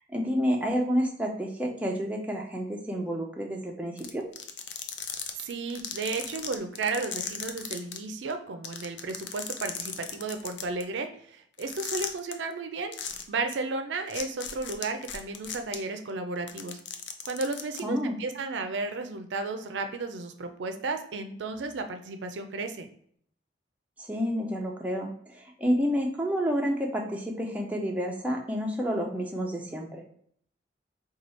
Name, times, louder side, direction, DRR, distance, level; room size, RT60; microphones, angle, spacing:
voice 1, 0.1-4.2 17.8-18.2 24.0-30.0, equal, 10° right, 0 dB, 0.4 m, -29 dB
sound 1, 4.0-8.0 8.3-8.4 8.6-10.8 11.6-12.3 12.9-13.2 13.5-13.6 14.1-15.7 16.4-17.8, left 9 dB, 75° left, 0.4 m, -36 dB
voice 2, 5.4-13.0 13.3-16.8 17.2-22.9, right 3 dB, 75° right, 7 dB, 0.4 m, -33 dB
3.0 x 2.3 x 4.2 m, 0.64 s
head